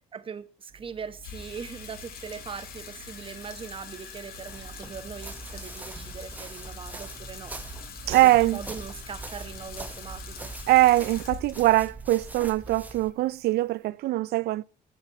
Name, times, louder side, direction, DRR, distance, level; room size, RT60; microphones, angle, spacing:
voice 1, 0.1-7.5 8.1-10.5, right 6 dB, 30° right, 1.2 m, -40 dB
sound 1, 0.7-13.9, right 6 dB, 50° right, 1.4 m, -50 dB
Water tap faucet / Sink (filling or washing), 1.2-13.6, left 6 dB, 65° left, 1.9 m, -44 dB
sound 2, 4.5-13.1, right 2 dB, 10° right, 0.9 m, -42 dB
voice 2, 8.1-8.6 10.7-14.6, right 16 dB, 70° right, 0.5 m, -22 dB
9.2 x 6.2 x 8.1 m
cardioid pair, 110°, 17 cm